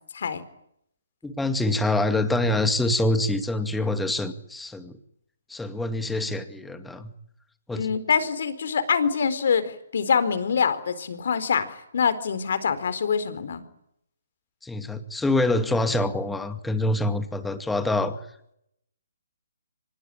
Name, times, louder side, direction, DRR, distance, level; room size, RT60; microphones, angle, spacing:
voice 1, 1.2-5.0 5.5-7.1 7.7-7.9 14.6-18.2, left 2 dB, 5° left, 8 dB, 2.2 m, -25 dB
voice 2, 7.7-13.6, left 6 dB, 60° left, 13 dB, 4.2 m, -25 dB
25.0 x 21.0 x 10.0 m, 0.74 s
hypercardioid pair, 155°, 0 cm